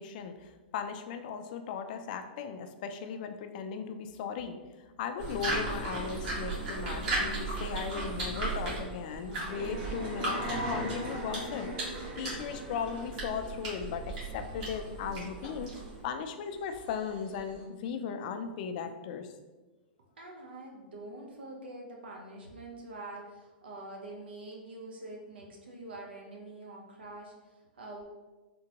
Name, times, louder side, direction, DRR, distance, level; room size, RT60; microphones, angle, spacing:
voice 1, 0.0-4.6 5.0-11.7 12.2-15.7 16.0-19.3, left 6 dB, 55° left, 7 dB, 0.4 m, -37 dB
sound 1, 5.2-16.0, right 2 dB, 50° right, 1.4 m, -37 dB
sound 2, 9.5-17.6, equal, 35° right, 1.0 m, -40 dB
voice 2, 20.2-28.0, right 2 dB, 85° right, 0 dB, 0.7 m, -45 dB
3.7 x 2.1 x 2.8 m, 1.2 s
hypercardioid pair, 125°, 5 cm